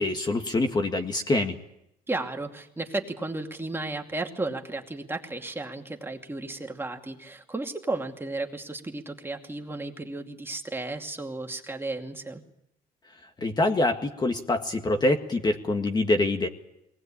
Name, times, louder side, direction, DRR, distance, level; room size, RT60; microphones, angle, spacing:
voice 1, 0.0-1.5 13.4-16.5, left 2 dB, 25° left, 5 dB, 1.8 m, -25 dB
voice 2, 2.1-12.4, right 2 dB, 15° right, 3 dB, 2.5 m, -34 dB
22.5 x 19.5 x 8.8 m, 0.82 s
cardioid pair, 110°, 17 cm